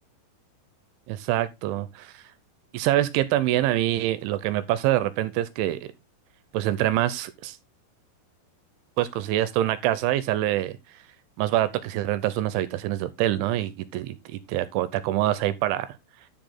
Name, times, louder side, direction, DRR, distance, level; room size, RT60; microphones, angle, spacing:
voice 1, 1.1-2.2 2.7-5.9 6.5-7.6 9.0-10.8 11.4-15.9, right 14 dB, 80° right, 3.0 m, -25 dB
10.5 x 7.0 x 3.8 m
omnidirectional pair, 5.6 m